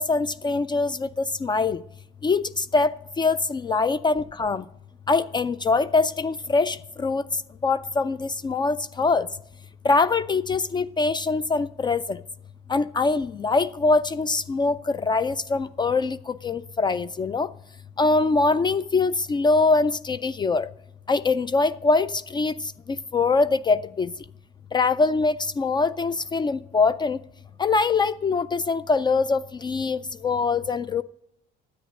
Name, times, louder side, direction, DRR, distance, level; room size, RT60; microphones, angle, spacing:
voice 1, 0.0-1.8 2.2-4.6 5.1-7.3 7.6-9.3 9.8-12.2 12.7-17.5 18.0-20.7 21.1-24.1 24.7-27.2 27.6-31.0, left 3 dB, 25° left, 0.4 m, -23 dB
10.0 x 8.7 x 6.4 m
cardioid pair, 110°, 17 cm